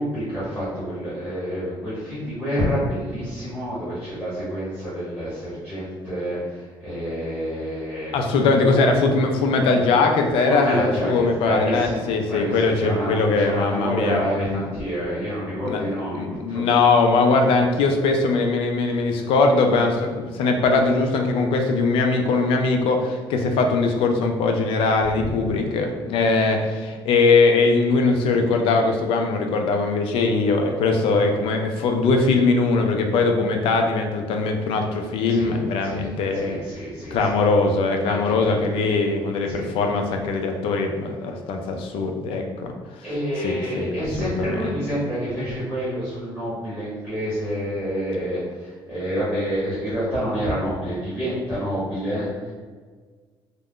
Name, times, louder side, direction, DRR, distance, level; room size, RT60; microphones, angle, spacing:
voice 1, 0.0-8.1 10.4-16.6 25.2-25.6 35.3-35.5 35.8-37.4 38.0-38.6 39.5-39.7 43.0-52.5, equal, ahead, -11 dB, 1.1 m, -28 dB
voice 2, 8.1-14.6 15.6-15.8 16.1-36.6 37.1-42.7 43.4-43.9 44.2-44.8, left 3 dB, 80° left, 3 dB, 0.4 m, -21 dB
2.4 x 2.1 x 3.5 m, 1.5 s
cardioid pair, 170°, 9 cm